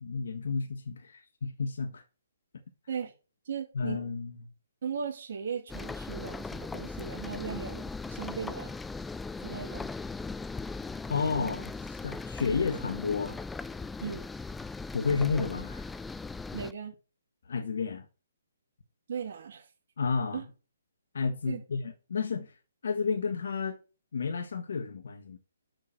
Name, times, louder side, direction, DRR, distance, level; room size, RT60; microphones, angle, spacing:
voice 1, 0.0-2.0 3.7-4.4 11.1-13.4 14.9-15.9 17.4-18.1 20.0-20.4 21.1-22.5 22.8-23.8 24.1-25.4, left 5 dB, 70° left, 1.4 m, -31 dB
voice 2, 3.5-4.0 4.8-8.7 9.4-9.9 14.0-14.3 16.5-16.9 19.1-19.7 20.3-20.5 21.5-21.6, right 6 dB, 55° right, 2.6 m, -37 dB
sound 1, 5.7-16.7, left 3 dB, 5° left, 0.3 m, -39 dB
6.8 x 6.2 x 6.6 m
hypercardioid pair, 155°, 0 cm